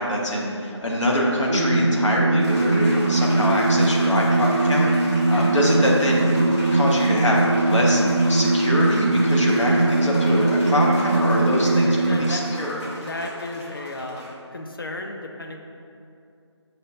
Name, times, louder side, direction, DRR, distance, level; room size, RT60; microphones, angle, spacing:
voice 1, 0.0-6.3 6.7-8.0 8.3-12.8, left 1 dB, 90° left, -3 dB, 0.8 m, -24 dB
sound 1, 1.5-12.2, right 2 dB, 45° right, 0.4 m, -20 dB
sound 2, 2.4-14.3, equal, 70° left, 1.3 m, -37 dB
voice 2, 11.7-12.7 13.0-15.6, left 2 dB, 50° left, 3 dB, 0.4 m, -34 dB
6.5 x 2.2 x 2.5 m, 2.5 s
figure-of-eight pair, 165°, 15 cm